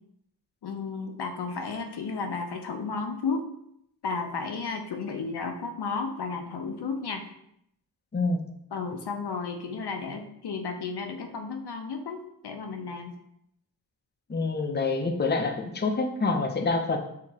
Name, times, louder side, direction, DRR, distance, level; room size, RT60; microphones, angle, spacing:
voice 1, 0.6-3.4 4.0-7.2 8.7-13.1, left 4 dB, 75° left, 4 dB, 0.5 m, -33 dB
voice 2, 14.3-17.0, left 3 dB, 25° left, 4 dB, 0.5 m, -26 dB
4.6 x 2.8 x 2.8 m, 0.74 s
cardioid pair, 45°, 40 cm